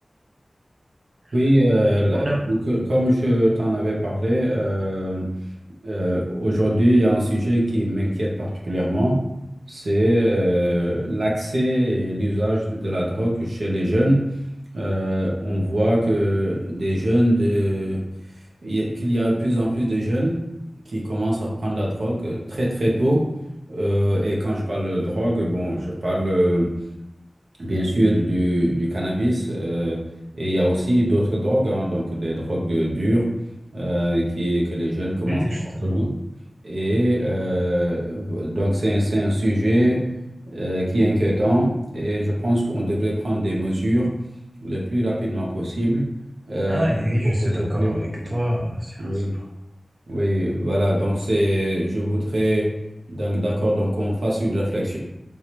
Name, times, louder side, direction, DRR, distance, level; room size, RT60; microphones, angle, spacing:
voice 1, 1.3-5.3 5.8-9.2 9.7-14.2 14.7-18.0 18.6-20.4 20.9-23.2 23.7-26.7 27.6-30.0 30.3-33.2 33.7-35.4 35.8-36.1 36.6-40.0 40.5-44.1 44.6-46.0 46.5-46.9 47.4-48.4 49.0-49.3 50.1-52.7 53.1-55.0, equal, 80° right, -4 dB, 1.0 m, -22 dB
voice 2, 35.3-36.1 46.6-49.4, equal, 40° right, -3 dB, 0.6 m, -25 dB
3.4 x 3.3 x 3.0 m, 0.91 s
wide cardioid pair, 75°, 0 cm